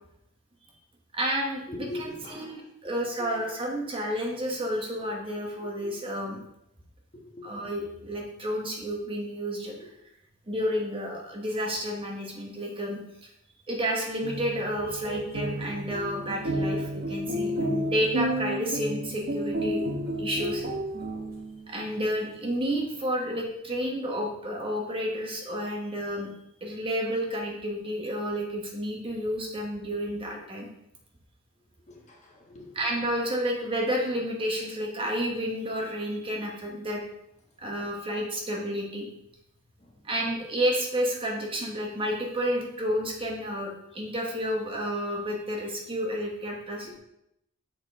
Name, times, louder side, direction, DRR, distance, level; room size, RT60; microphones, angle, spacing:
voice 1, 1.1-6.4 7.4-9.7 10.5-13.3 13.7-20.6 21.7-26.3 26.6-30.7 32.7-37.0 37.6-39.1 40.0-46.9, equal, 25° right, -1 dB, 1.1 m, -31 dB
voice 2, 1.7-2.6 3.2-3.3 7.1-7.5 9.8-9.9 31.9-32.7 39.8-39.9 46.8-47.0, left 1 dB, 35° left, -2 dB, 1.4 m, -41 dB
sound 1, 14.1-21.7, equal, 50° right, 0.9 m, -31 dB
6.5 x 5.0 x 3.6 m, 0.81 s
head